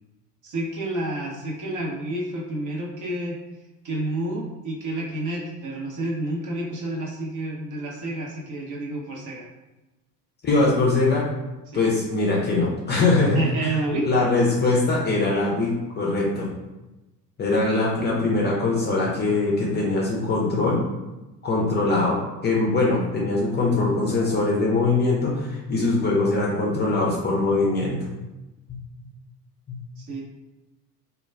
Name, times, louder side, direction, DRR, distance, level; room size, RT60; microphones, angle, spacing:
voice 1, 0.4-3.4 3.8-9.5 11.7-11.8 13.3-14.1 30.0-30.2, right 1 dB, 40° right, -3 dB, 0.7 m, -29 dB
voice 2, 10.4-11.2 11.7-13.4 14.0-16.5 17.4-20.8 21.4-28.0, left 3 dB, 20° left, -4 dB, 0.5 m, -22 dB
2.2 x 2.2 x 3.2 m, 1.1 s
figure-of-eight pair, 70°, 49 cm